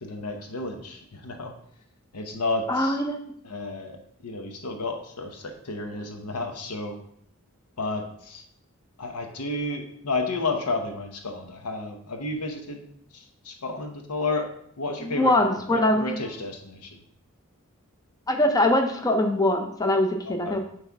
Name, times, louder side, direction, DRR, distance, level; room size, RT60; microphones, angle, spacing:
voice 1, 0.0-1.5 2.1-3.0 3.4-4.0 4.2-7.0 7.8-8.4 9.0-12.8 13.1-14.5 14.8-15.3 15.7-16.9 20.2-20.6, left 2 dB, 90° left, 4 dB, 0.9 m, -31 dB
voice 2, 2.7-3.2 15.0-16.2 18.3-20.6, left 1 dB, 15° left, 4 dB, 0.5 m, -22 dB
9.5 x 3.3 x 3.5 m, 0.68 s
head